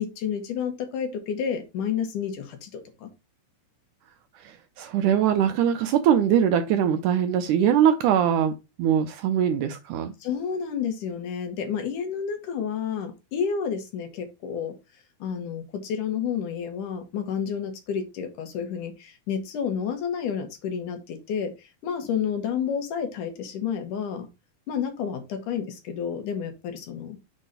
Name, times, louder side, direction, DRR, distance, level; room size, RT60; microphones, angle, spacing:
voice 1, 0.0-3.1 10.2-14.7 15.2-24.3 24.7-27.2, left 7 dB, 65° left, 2.8 m, -30 dB
voice 2, 4.4-10.1, right 9 dB, 75° right, 1.9 m, -22 dB
7.4 x 3.9 x 5.3 m
omnidirectional pair, 4.0 m